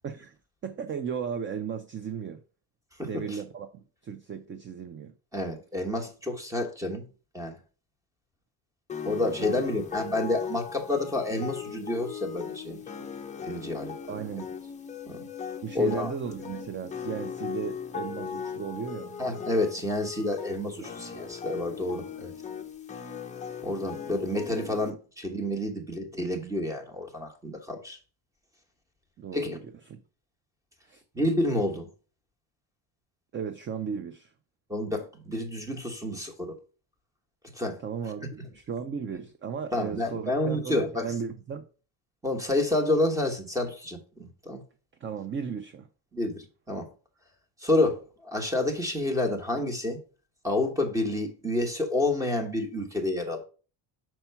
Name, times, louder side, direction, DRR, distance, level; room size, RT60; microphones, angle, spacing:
voice 1, 0.0-0.3 0.6-2.4 3.0-5.1 9.4-9.7 14.1-14.5 15.6-19.1 20.8-20.9 29.2-30.0 30.9-31.0 33.3-34.3 37.8-41.7 45.0-45.9, right 6 dB, 30° right, 0.4 m, -35 dB
voice 2, 3.0-3.4 5.3-7.1 7.3-7.6 9.0-12.8 13.4-13.9 15.1-15.3 15.7-16.1 19.2-22.3 23.6-28.0 29.3-29.6 31.1-31.9 34.7-36.6 37.5-37.8 39.7-41.1 42.2-44.6 46.1-46.9 47.6-50.0 50.4-53.4, left 1 dB, 5° right, 1.0 m, -29 dB
sound 1, 8.9-24.9, left 7 dB, 15° left, 0.6 m, -38 dB
5.8 x 4.5 x 5.6 m
cardioid pair, 170°, 45 cm